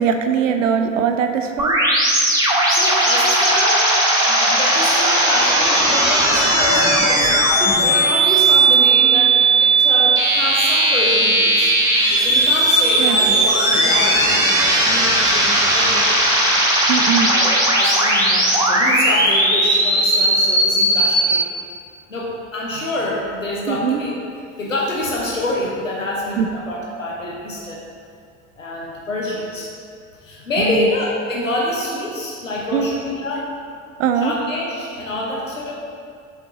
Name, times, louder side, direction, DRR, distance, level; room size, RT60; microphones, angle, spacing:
voice 1, 0.0-1.8 13.0-13.2 16.9-17.3 23.7-24.0 26.4-26.5 30.6-30.9 32.7-32.9 34.0-34.3, right 7 dB, 75° right, 6 dB, 0.5 m, -20 dB
sound 1, 1.6-21.3, right 2 dB, 10° right, 1.5 m, -16 dB
voice 2, 2.7-3.9 4.2-7.4 7.8-11.7 12.2-16.4 17.2-21.5 22.1-24.2 24.6-27.8 28.6-29.7 30.2-33.5 34.2-35.7, left 1 dB, 90° left, -3 dB, 0.7 m, -26 dB
6.9 x 4.3 x 3.9 m, 2.3 s
figure-of-eight pair, 60°, 38 cm